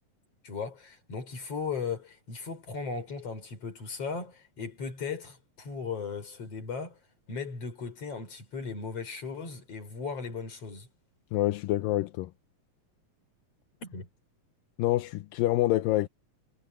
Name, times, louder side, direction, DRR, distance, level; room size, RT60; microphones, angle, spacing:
voice 1, 0.4-7.0 7.3-10.9 13.8-14.1, left 5 dB, 45° left, 5.7 m, -37 dB
voice 2, 11.3-12.3 14.8-16.1, left 16 dB, 80° left, 2.4 m, -26 dB
omnidirectional pair, 4.1 m